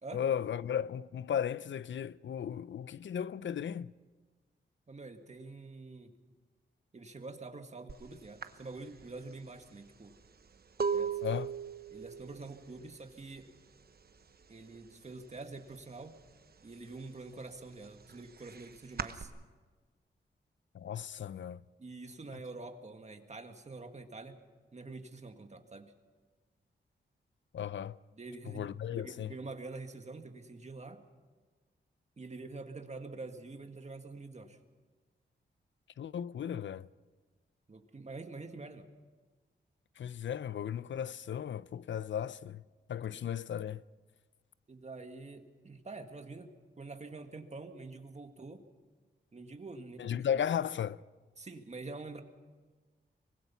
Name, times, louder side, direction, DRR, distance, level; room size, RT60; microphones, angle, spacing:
voice 1, 0.1-3.9 11.2-11.5 20.7-21.6 27.5-28.0 28.5-29.3 36.0-36.9 40.0-42.6 42.9-43.8 50.0-51.0, left 9 dB, 70° left, 0.5 m, -35 dB
voice 2, 4.9-6.1 6.9-10.2 10.9-11.2 11.9-13.5 14.5-16.2 16.6-19.3 21.8-24.4 24.7-25.9 28.1-31.0 32.2-34.6 37.7-38.9 43.1-43.2 44.7-48.6 49.3-50.3 51.4-52.2, right 3 dB, 35° right, 1.8 m, -46 dB
sound 1, 7.9-8.1 8.4-14.1 14.3-14.9 15.1-16.3 16.7-19.2, right 6 dB, 50° right, 1.0 m, -38 dB
24.0 x 20.5 x 5.7 m
wide cardioid pair, 105°, 20 cm